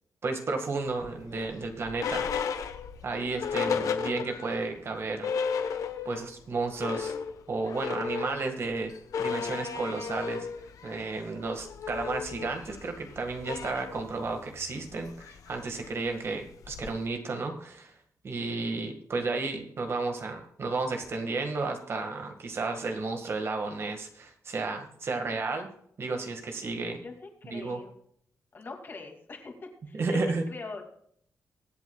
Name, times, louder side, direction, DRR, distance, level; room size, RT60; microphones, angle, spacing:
voice 1, 0.2-2.5 3.0-5.7 6.1-7.1 7.5-8.9 9.2-10.5 10.8-18.0 18.2-25.7 26.0-27.0 27.4-27.8 29.9-30.4, right 3 dB, 45° right, 4 dB, 1.8 m, -32 dB
sound 1, 1.0-4.6 4.9-5.0 5.2-6.3 6.6-17.1, left 6 dB, 85° left, 1.1 m, -35 dB
voice 2, 27.0-27.9 28.5-30.2 30.5-31.0, left 3 dB, 40° left, 2 dB, 2.5 m, -43 dB
23.5 x 8.4 x 2.4 m, 0.66 s
wide cardioid pair, 135°, 6 cm